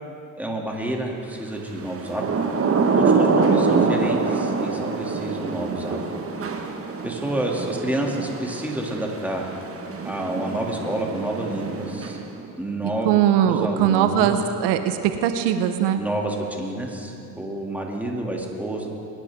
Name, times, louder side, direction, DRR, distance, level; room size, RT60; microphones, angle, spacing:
voice 1, 0.4-2.3 3.0-6.1 7.0-9.5 10.0-12.2 12.6-14.3 16.0-18.9, right 1 dB, 5° right, -1 dB, 2.6 m, -29 dB
Thunder / Rain, 1.9-12.5, right 4 dB, 30° right, 1.5 m, -25 dB
voice 2, 13.0-16.0, right 10 dB, 70° right, 9 dB, 1.0 m, -20 dB
22.0 x 10.5 x 3.7 m, 2.6 s
supercardioid pair, 70°, 42 cm